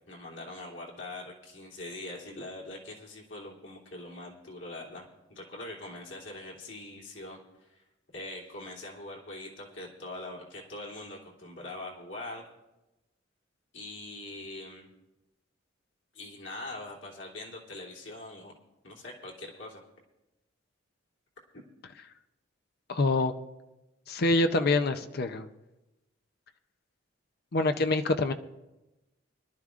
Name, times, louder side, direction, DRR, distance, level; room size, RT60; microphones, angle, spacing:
voice 1, 0.1-7.8 8.1-12.4 13.7-14.9 16.1-18.5 18.8-19.8 21.5-21.6, left 2 dB, 70° left, -3 dB, 2.9 m, -43 dB
voice 2, 22.9-23.3 24.1-25.5 27.5-28.3, left 2 dB, 55° left, 8 dB, 0.6 m, -25 dB
24.0 x 12.0 x 2.5 m, 1.0 s
head